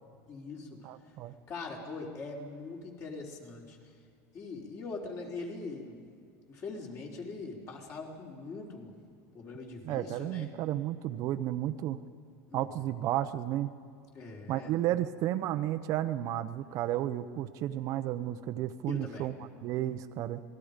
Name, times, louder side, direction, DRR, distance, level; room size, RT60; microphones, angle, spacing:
voice 1, 0.3-0.7 1.5-3.8 4.3-6.0 6.5-8.9 9.3-10.5 12.5-12.9 14.1-14.7 18.9-19.3, left 3 dB, 40° left, 0 dB, 4.2 m, -42 dB
voice 2, 0.8-1.3 9.8-12.0 12.5-13.7 14.5-19.3 19.6-20.4, right 13 dB, 50° right, 10 dB, 0.8 m, -32 dB
27.0 x 19.5 x 5.2 m, 2.3 s
supercardioid pair, 135°, 8 cm